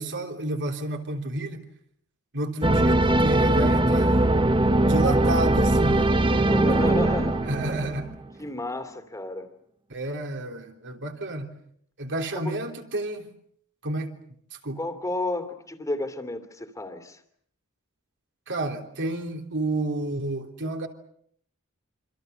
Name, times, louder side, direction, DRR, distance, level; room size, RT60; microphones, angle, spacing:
voice 1, 0.0-1.7 2.3-4.2 4.8-6.0 6.7-6.8 7.4-8.1 9.9-11.5 12.0-13.3 13.8-14.2 14.6-14.8 18.5-20.9, right 2 dB, 55° right, 3.4 m, -30 dB
sound 1, 2.6-8.2, right 1 dB, 25° right, 1.2 m, -21 dB
voice 2, 6.3-7.5 8.4-9.5 12.3-12.6 14.8-17.2, left 2 dB, 15° left, 2.8 m, -32 dB
27.0 x 26.0 x 6.9 m
head